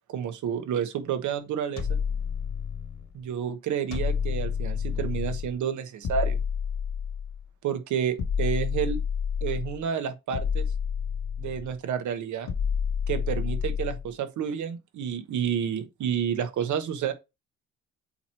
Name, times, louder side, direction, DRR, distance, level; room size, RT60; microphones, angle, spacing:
voice 1, 0.1-2.0 3.1-6.4 7.6-9.0 9.4-10.7 11.4-12.5 13.1-17.1, right 8 dB, 75° right, 1.2 m, -30 dB
sound 1, 1.8-3.1 3.9-5.5 6.0-7.5 8.2-9.8 10.3-11.7 12.5-14.1, left 7 dB, 60° left, 1.6 m, -29 dB
8.1 x 3.0 x 4.4 m
cardioid pair, 90°, 30 cm